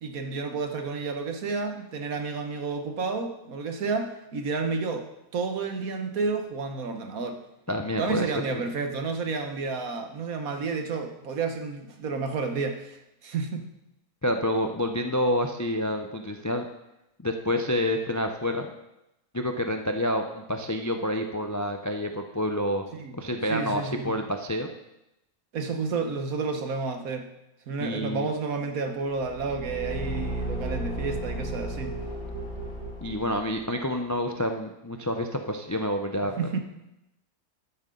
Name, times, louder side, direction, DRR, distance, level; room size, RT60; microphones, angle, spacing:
voice 1, 0.0-5.1 5.3-7.4 8.0-13.7 22.9-23.2 23.5-24.2 25.5-27.3 27.7-32.0 36.4-36.6, right 4 dB, 70° right, 5 dB, 1.6 m, -31 dB
voice 2, 7.7-8.2 8.5-8.6 14.2-16.7 17.2-18.7 19.3-22.8 23.2-24.7 27.8-28.3 33.0-36.3, left 1 dB, 30° left, 5 dB, 0.3 m, -28 dB
Car / Engine, 29.1-33.7, right 1 dB, 80° left, 2.5 m, -34 dB
13.0 x 9.5 x 3.8 m, 0.90 s
omnidirectional pair, 1.5 m